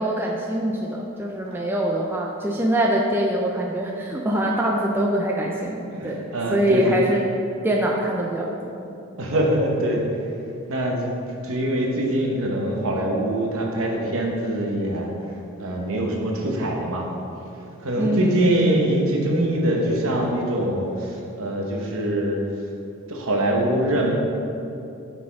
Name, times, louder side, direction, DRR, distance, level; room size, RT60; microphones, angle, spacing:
voice 1, 0.0-6.2 6.5-7.2 7.6-8.7 18.0-18.5, right 1 dB, 10° right, -2 dB, 0.3 m, -24 dB
voice 2, 5.9-7.0 9.2-10.0 10.7-11.1 11.4-15.1 15.6-17.1 17.8-22.4 23.1-24.1, right 1 dB, 70° right, 0 dB, 0.9 m, -23 dB
6.0 x 4.1 x 4.6 m, 2.8 s
head